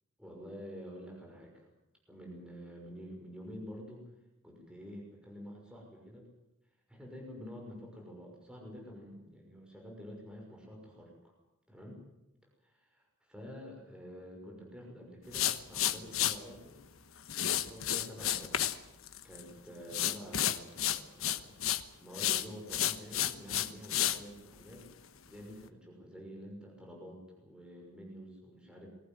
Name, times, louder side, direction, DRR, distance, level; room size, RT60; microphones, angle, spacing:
voice 1, 0.2-1.7 2.1-4.1 4.4-6.3 6.9-11.1 11.7-12.0 12.6-16.8 17.4-18.7 19.2-21.6 22.0-24.9 25.3-28.9, equal, 5° right, -1 dB, 6.1 m, -48 dB
sound 1, 15.3-16.4 17.3-18.8 19.1-19.5 19.9-21.8 22.1-24.2, left 11 dB, 70° left, 1.2 m, -31 dB
22.0 x 18.0 x 9.3 m, 0.89 s
head